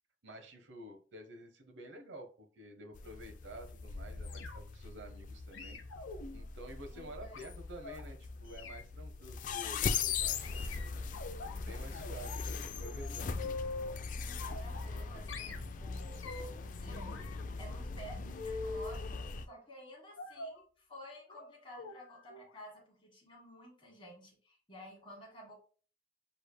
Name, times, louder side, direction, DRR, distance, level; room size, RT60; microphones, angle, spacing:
voice 1, 0.2-5.8 6.3-11.1 11.6-13.3, right 1 dB, 70° right, 5 dB, 0.9 m, -50 dB
sound 1, 2.9-19.5, left 5 dB, 40° left, 0.3 m, -40 dB
sound 2, 4.2-4.9 5.5-8.0 8.5-8.8 9.5-9.8 10.4-11.6 11.9-12.5 12.8-14.0 14.4-15.0 15.3-16.6 16.9-19.0 20.2-20.6 21.3-21.5 21.7-22.0 22.3-22.5 22.8-22.9, left 3 dB, 90° left, 0.7 m, -45 dB
voice 2, 6.9-7.4 14.2-16.2 16.7-17.1 17.6-19.1 19.4-25.5, equal, 25° left, -1 dB, 1.6 m, -52 dB
6.8 x 3.3 x 2.2 m, 0.40 s
head